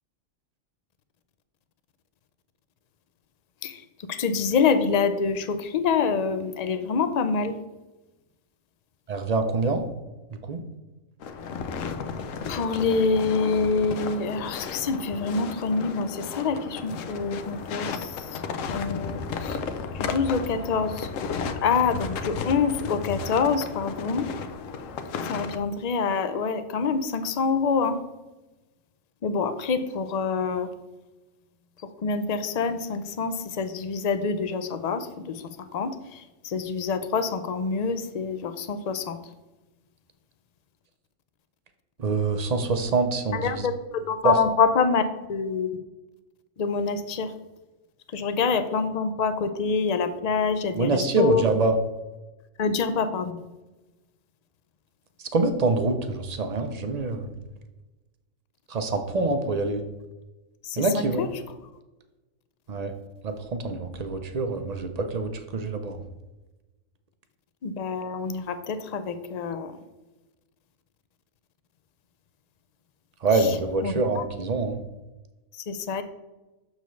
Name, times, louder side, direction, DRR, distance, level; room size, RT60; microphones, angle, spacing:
voice 1, 4.1-7.5 12.5-18.4 18.7-19.6 19.9-21.1 21.6-24.3 25.3-28.0 29.2-30.7 32.0-35.4 35.7-39.2 43.3-45.7 46.6-47.3 48.1-51.4 52.6-53.4 60.6-61.3 67.6-69.7 73.3-73.6 73.8-74.2 75.5-76.0, left 5 dB, 60° left, 10 dB, 0.4 m, -26 dB
voice 2, 9.1-9.9 10.5-10.6 42.0-43.5 44.2-44.3 50.7-51.7 55.3-57.3 58.7-59.8 60.8-61.2 62.7-62.9 63.2-66.0 73.2-74.8, right 3 dB, 45° right, 7 dB, 0.5 m, -25 dB
sound 1, 11.2-25.6, left 5 dB, 80° left, 1.0 m, -34 dB
6.8 x 6.4 x 3.1 m, 1.1 s
omnidirectional pair, 1.3 m